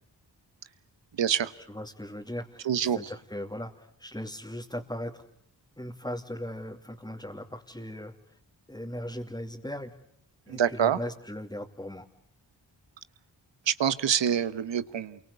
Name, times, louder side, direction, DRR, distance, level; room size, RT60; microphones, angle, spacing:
voice 1, 1.1-1.5 2.6-3.0 10.5-11.0 13.7-15.2, right 9 dB, 85° right, 15 dB, 1.2 m, -26 dB
voice 2, 1.7-5.2 5.8-8.4 8.7-9.9 10.5-12.0, left 1 dB, 10° left, -1 dB, 2.8 m, -38 dB
29.0 x 24.0 x 8.4 m, 0.69 s
cardioid pair, 45°, 43 cm